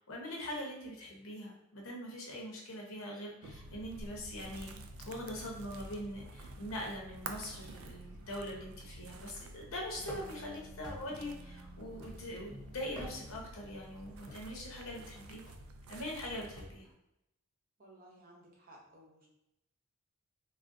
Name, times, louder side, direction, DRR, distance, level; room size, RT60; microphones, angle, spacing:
voice 1, 0.1-4.7 5.0-15.4 15.9-16.9, left 1 dB, 70° left, -1 dB, 0.8 m, -42 dB
sound 1, 2.9-3.2 3.4-9.6 9.9-13.4, left 1 dB, 5° right, 0.4 m, -57 dB
sound 2, 3.4-16.6, right 2 dB, 75° right, 0.3 m, -50 dB
sound 3, 10.1-10.5 10.8-11.3 12.0-12.5 12.8-13.5 14.3-14.6 15.5-15.7 16.6-16.9, left 1 dB, 20° left, 0.8 m, -48 dB
voice 2, 17.8-19.3, right 1 dB, 40° right, -3 dB, 0.7 m, -58 dB
3.4 x 2.5 x 2.5 m, 0.84 s
head